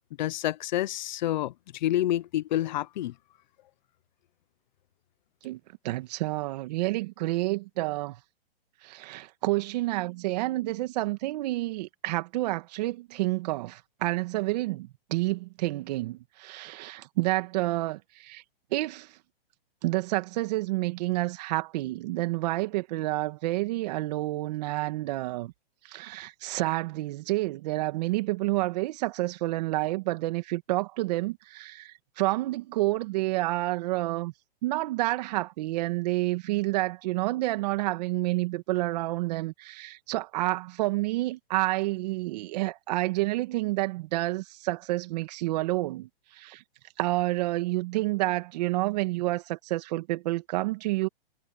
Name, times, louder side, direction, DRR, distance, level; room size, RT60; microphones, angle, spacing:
voice 1, 0.2-3.1, left 13 dB, 50° left, 1.1 m, -28 dB
voice 2, 5.8-8.2 8.8-18.4 18.7-19.1 19.8-25.5 25.8-34.3 34.6-46.6 47.0-51.1, right 19 dB, 40° right, 2.2 m, -29 dB
hypercardioid pair, 150°, 30 cm